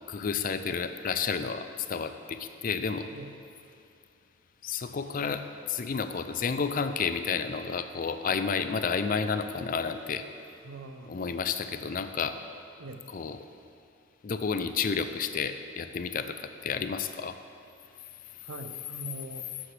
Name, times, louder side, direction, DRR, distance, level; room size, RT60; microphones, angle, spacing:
voice 1, 0.1-3.1 4.6-5.4 5.7-10.3 11.1-12.4 13.1-13.4 14.2-17.4, left 5 dB, 40° left, 10 dB, 0.4 m, -31 dB
voice 2, 10.6-11.2 12.8-13.0 18.4-19.5, right 2 dB, 85° right, 8 dB, 0.6 m, -42 dB
12.0 x 7.7 x 3.3 m, 2.5 s
head